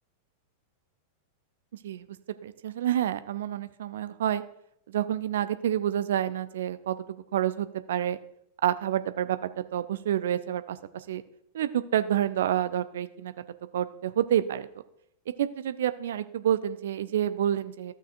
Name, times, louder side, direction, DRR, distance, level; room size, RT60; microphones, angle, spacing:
voice 1, 2.4-4.4 4.9-7.0 7.3-8.2 8.6-9.4 9.7-11.2 11.5-13.3 13.7-14.7 15.4-17.9, right 11 dB, 60° right, 12 dB, 0.5 m, -28 dB
14.5 x 6.5 x 2.6 m, 0.75 s
figure-of-eight pair, 90°, 0 cm